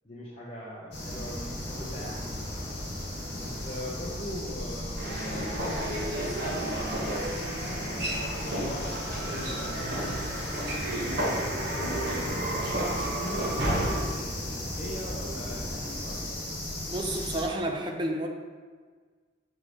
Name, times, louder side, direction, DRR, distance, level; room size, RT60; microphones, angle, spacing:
voice 1, 0.0-2.7 3.3-7.1 7.9-10.6 10.8-12.5 12.9-16.4, equal, 30° left, -8 dB, 1.0 m, -40 dB
sound 1, 0.9-17.4, left 1 dB, 65° left, 1.9 m, -36 dB
sound 2, 5.0-14.0, right 1 dB, 65° right, 1.5 m, -32 dB
voice 2, 16.9-18.3, right 1 dB, 25° right, 2 dB, 0.6 m, -30 dB
7.6 x 5.0 x 3.1 m, 1.5 s
head